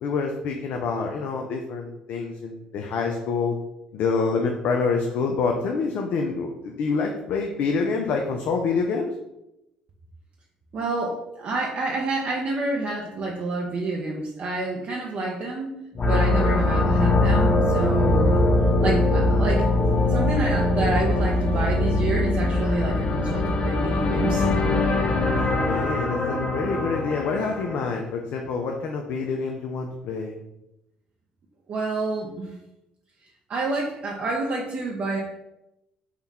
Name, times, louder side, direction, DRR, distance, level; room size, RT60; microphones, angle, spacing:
voice 1, 0.0-3.5 3.9-9.1 25.6-30.4, left 4 dB, 65° left, 2 dB, 0.4 m, -27 dB
voice 2, 10.7-15.8 16.0-18.4 18.8-19.7 20.1-24.6 31.7-32.5 33.5-35.2, right 2 dB, 50° right, -2 dB, 0.6 m, -28 dB
sound 1, 15.9-27.9, left 2 dB, 35° left, 0.7 m, -22 dB
3.6 x 2.3 x 4.1 m, 0.91 s
supercardioid pair, 70°, 3 cm